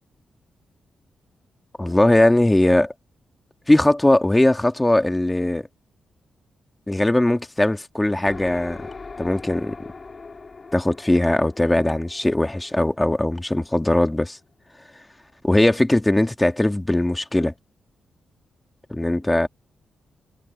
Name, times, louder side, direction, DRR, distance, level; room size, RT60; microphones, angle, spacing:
voice 1, 1.8-2.9 3.7-5.7 6.9-8.8 9.2-9.8 10.7-14.4 15.4-17.5 18.9-19.5, left 1 dB, 15° left, 1.9 m, -19 dB
sound 1, 8.3-13.9, left 4 dB, 40° left, 4.0 m, -41 dB
cardioid pair, 70°, 0 cm